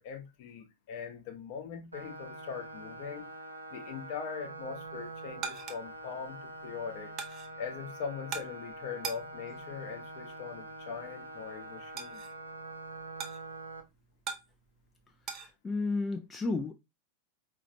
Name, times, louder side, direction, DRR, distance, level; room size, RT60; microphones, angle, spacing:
voice 1, 0.0-3.3 3.7-7.1 7.6-12.2, left 6 dB, 50° left, 0.9 m, -41 dB
sound 1, 1.9-13.8, right 2 dB, 85° right, 0.7 m, -45 dB
sound 2, 4.8-15.5, right 6 dB, 35° right, 0.7 m, -45 dB
voice 2, 15.4-16.7, left 3 dB, 15° left, 0.4 m, -32 dB
4.9 x 2.8 x 2.7 m
figure-of-eight pair, 90°, 0 cm